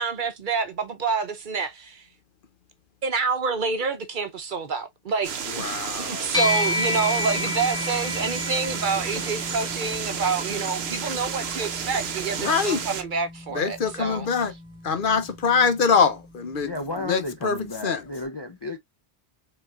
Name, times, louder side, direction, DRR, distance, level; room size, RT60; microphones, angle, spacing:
voice 1, 0.0-2.0 3.0-14.3, right 5 dB, 55° right, 0.8 m, -28 dB
sound 1, 5.2-13.0, right 7 dB, 80° right, 1.1 m, -32 dB
voice 2, 5.6-6.3 12.4-12.8 13.5-14.5 14.8-16.7 17.1-17.6 17.8-18.0, left 5 dB, 60° left, 0.9 m, -23 dB
sound 2, 6.3-16.0, left 2 dB, 5° left, 1.5 m, -32 dB
voice 3, 16.6-18.8, left 2 dB, 30° left, 0.5 m, -33 dB
4.5 x 3.9 x 2.4 m
omnidirectional pair, 1.1 m